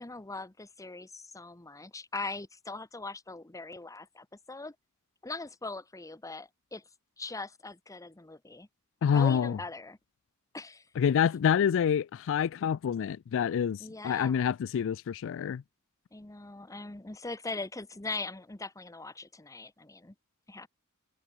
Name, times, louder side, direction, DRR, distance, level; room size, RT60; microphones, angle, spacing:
voice 1, 0.0-4.7 5.2-6.8 7.2-8.7 9.1-10.0 10.5-10.9 13.8-14.5 16.1-20.1 20.5-20.7, left 3 dB, 15° left, 0.9 m, -41 dB
voice 2, 9.0-9.6 11.0-15.6, left 8 dB, 60° left, 0.3 m, -27 dB
head